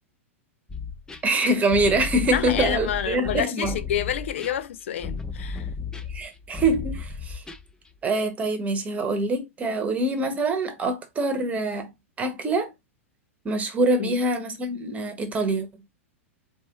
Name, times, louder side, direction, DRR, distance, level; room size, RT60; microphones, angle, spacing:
sound 1, 0.7-7.9, left 4 dB, 10° left, 0.5 m, -34 dB
voice 1, 1.2-3.8 6.1-7.4 8.0-11.9 12.2-12.7 13.4-15.7, right 2 dB, 20° right, 1.1 m, -25 dB
voice 2, 2.3-5.7 14.0-14.2, left 10 dB, 60° left, 0.5 m, -28 dB
4.4 x 3.1 x 3.7 m
figure-of-eight pair, 100°, 7 cm